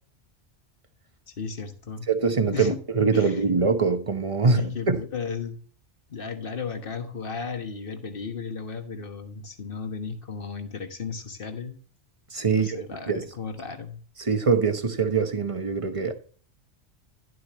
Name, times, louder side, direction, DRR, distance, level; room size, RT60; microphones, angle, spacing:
voice 1, 1.3-2.1 2.5-2.8 3.1-3.5 4.6-5.6 6.1-11.8 12.5-14.0, left 5 dB, 50° left, 1.6 m, -35 dB
voice 2, 2.1-5.0 12.3-12.8 13.1-13.2 14.2-16.1, right 4 dB, 30° right, 1.0 m, -23 dB
11.5 x 7.9 x 3.1 m
omnidirectional pair, 1.2 m